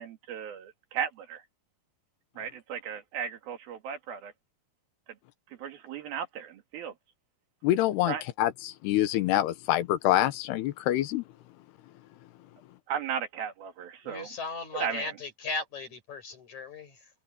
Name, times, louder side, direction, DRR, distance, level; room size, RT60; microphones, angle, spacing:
voice 1, 0.0-1.4 2.4-4.3 5.6-6.9 8.1-8.2 12.9-14.3 14.7-15.1, right 8 dB, 70° right, 3.8 m, -35 dB
voice 2, 7.6-11.2, left 14 dB, 90° left, 3.2 m, -26 dB
voice 3, 14.0-17.1, left 3 dB, 45° left, 6.8 m, -37 dB
omnidirectional pair, 4.6 m